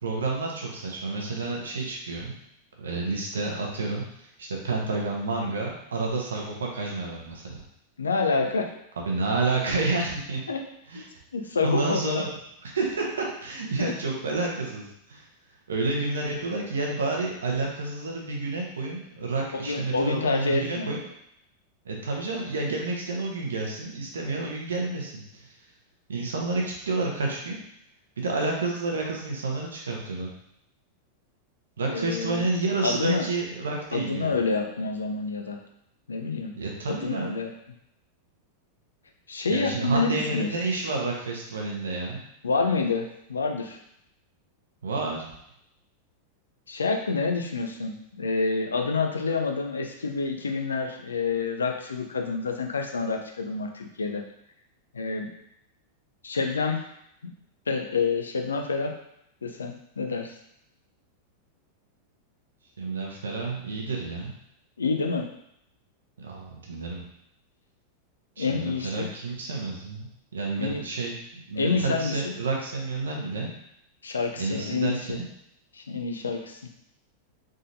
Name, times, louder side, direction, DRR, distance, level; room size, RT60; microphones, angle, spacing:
voice 1, 0.0-2.4 2.8-7.6 9.1-10.4 10.9-11.0 11.6-12.3 12.6-15.2 15.7-21.0 21.8-25.5 26.1-27.6 28.2-30.3 31.8-34.3 36.5-37.3 39.5-42.3 44.8-45.2 62.8-64.3 66.2-67.0 68.4-73.5 74.4-75.3, right 3 dB, 70° right, -1 dB, 1.0 m, -30 dB
voice 2, 8.0-8.7 10.5-10.6 10.9-11.0 11.3-12.2 13.8-13.9 19.5-20.9 31.8-32.5 32.8-33.2 33.9-35.6 36.1-36.6 36.9-37.5 39.3-40.5 42.4-43.8 46.7-54.2 54.9-55.3 56.2-56.8 57.2-57.3 57.7-59.0 59.4-60.3 64.8-65.3 68.4-69.1 70.6-70.8 71.6-72.3 74.0-75.2 75.7-76.6, left 4 dB, 70° left, 3 dB, 0.5 m, -28 dB
3.9 x 3.8 x 2.6 m, 0.75 s
figure-of-eight pair, 90°, 0 cm